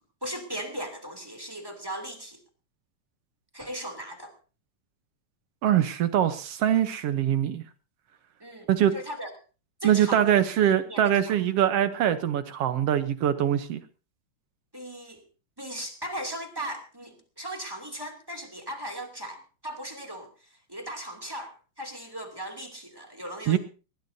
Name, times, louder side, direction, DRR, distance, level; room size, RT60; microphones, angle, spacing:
voice 1, 0.2-2.4 3.5-4.3 8.4-9.3 9.8-10.3 10.8-11.4 14.7-15.2 15.6-23.6, equal, 10° right, 2 dB, 2.4 m, -38 dB
voice 2, 5.6-7.6 8.7-8.9 9.8-13.8 23.5-23.6, right 10 dB, 65° right, 11 dB, 1.7 m, -23 dB
20.0 x 18.5 x 2.8 m, 0.35 s
omnidirectional pair, 3.4 m